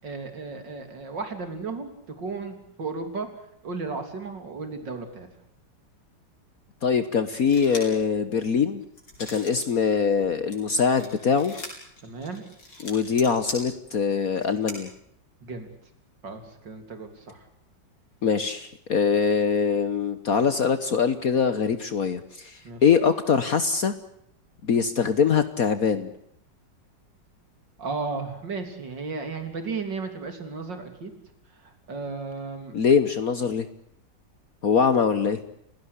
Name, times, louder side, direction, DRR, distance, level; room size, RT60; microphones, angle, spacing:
voice 1, 0.0-3.3 3.6-5.3 12.0-12.4 15.4-15.7 16.2-17.5 22.6-22.8 27.8-31.1 31.6-32.7, right 4 dB, 75° right, 7 dB, 4.0 m, -34 dB
voice 2, 6.8-8.8 9.3-11.5 12.8-14.9 18.2-23.9 24.6-26.1 32.7-33.7 34.6-35.4, left 6 dB, 55° left, 11 dB, 1.5 m, -23 dB
sound 1, 7.3-8.0 8.5-9.7 10.1-14.8, left 2 dB, 80° left, 7.2 m, -40 dB
30.0 x 17.5 x 8.2 m, 0.72 s
omnidirectional pair, 1.9 m